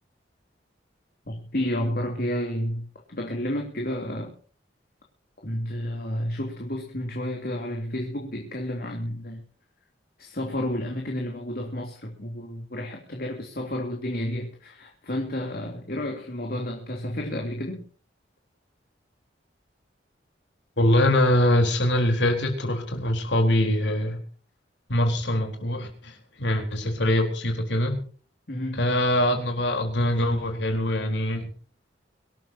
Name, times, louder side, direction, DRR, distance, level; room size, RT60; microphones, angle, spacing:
voice 1, 1.2-4.3 5.4-9.4 10.2-17.9 28.5-28.9, left 1 dB, 55° left, 1 dB, 3.3 m, -31 dB
voice 2, 20.8-24.2 24.9-28.0 28.8-31.5, left 1 dB, 75° left, 3 dB, 4.2 m, -23 dB
25.0 x 13.0 x 2.9 m, 0.42 s
head